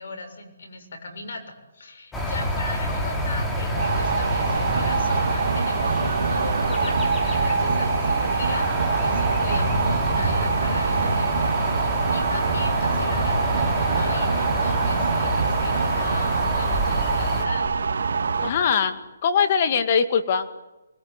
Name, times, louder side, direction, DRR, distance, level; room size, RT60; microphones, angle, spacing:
voice 1, 0.0-1.4 1.7-17.7, left 3 dB, 65° left, 4 dB, 7.1 m, -38 dB
sound 1, 2.1-17.5, equal, 10° left, 3.3 m, -27 dB
sound 2, 3.8-18.5, right 5 dB, 75° right, 2.7 m, -24 dB
voice 2, 18.4-20.5, left 6 dB, 40° left, 9 dB, 2.2 m, -22 dB
24.0 x 22.0 x 9.9 m, 1.0 s
hypercardioid pair, 160°, 0 cm